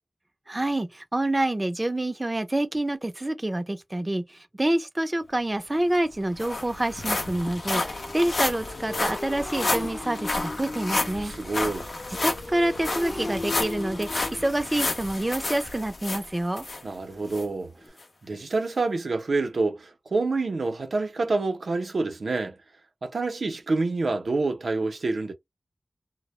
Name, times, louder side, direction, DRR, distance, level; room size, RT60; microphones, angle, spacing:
voice 1, 0.5-11.3 12.2-16.7, right 1 dB, 30° right, 0.4 m, -27 dB
Motorcycle, 5.3-5.4 5.9-6.0 6.3-17.9, left 2 dB, 50° left, 0.7 m, -39 dB
sound 1, 5.6-5.7 5.9-16.8 17.3-17.4 18.0-18.1, left 2 dB, 85° left, 0.6 m, -31 dB
voice 2, 11.2-11.9 16.8-17.7 18.2-22.6 23.0-25.3, right 3 dB, 90° right, 0.5 m, -27 dB
2.0 x 2.0 x 2.9 m
wide cardioid pair, 50°, 0 cm